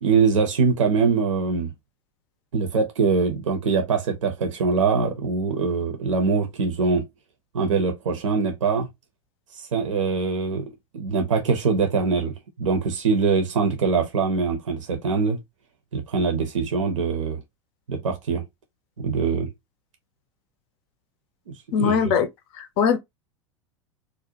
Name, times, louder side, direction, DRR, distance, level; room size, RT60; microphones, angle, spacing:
voice 1, 0.0-1.7 2.5-7.1 7.5-8.9 9.7-15.4 15.9-17.4 17.9-18.5 19.0-19.5 21.5-22.1, right 5 dB, 75° right, 0.5 m, -23 dB
voice 2, 21.7-22.3 22.6-23.0, left 7 dB, 50° left, 0.5 m, -21 dB
2.5 x 2.1 x 2.7 m
figure-of-eight pair, 85°, 16 cm